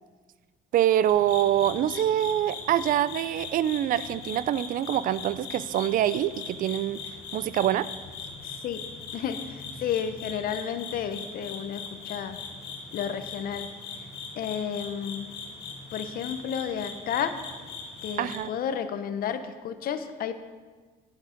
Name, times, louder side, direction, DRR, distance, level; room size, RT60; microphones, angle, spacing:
voice 1, 0.7-7.0 7.3-7.9 18.2-18.5, right 11 dB, 55° right, 17 dB, 0.4 m, -25 dB
sound 1, 1.1-18.4, left 4 dB, 75° left, 2.1 m, -40 dB
voice 2, 8.4-8.8 9.1-12.4 12.9-13.7 14.3-15.3 15.9-17.4 18.0-20.3, left 8 dB, 60° left, 10 dB, 0.8 m, -32 dB
9.4 x 7.3 x 5.1 m, 1.4 s
cardioid pair, 110°, 17 cm